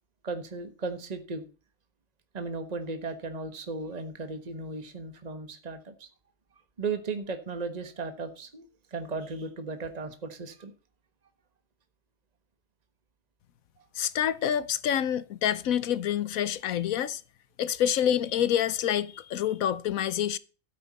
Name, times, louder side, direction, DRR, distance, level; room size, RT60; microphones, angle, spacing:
voice 1, 0.2-1.4 2.3-6.1 6.8-10.7, right 3 dB, 30° right, 1.4 m, -36 dB
voice 2, 14.0-17.2 17.6-20.4, left 10 dB, 85° left, 1.2 m, -27 dB
12.5 x 9.3 x 4.1 m
omnidirectional pair, 1.4 m